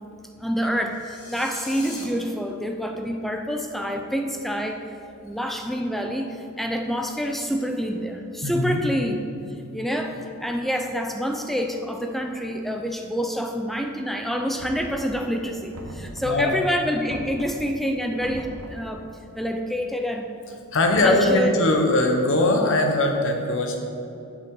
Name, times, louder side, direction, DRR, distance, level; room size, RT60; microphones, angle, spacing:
voice 1, 0.4-4.8 5.2-9.2 9.7-19.0 19.3-20.3 21.0-21.5, equal, ahead, 3 dB, 0.4 m, -27 dB
sound 1, 0.9-2.0, left 4 dB, 80° left, 1.4 m, -41 dB
voice 2, 8.4-8.8 15.9-16.5 20.7-23.8, left 2 dB, 60° left, 3 dB, 0.9 m, -21 dB
Knock, 14.6-15.3 15.7-16.5 17.1-17.7 18.2-18.9, right 1 dB, 65° right, 0.9 m, -40 dB
7.7 x 7.4 x 3.7 m, 2.7 s
head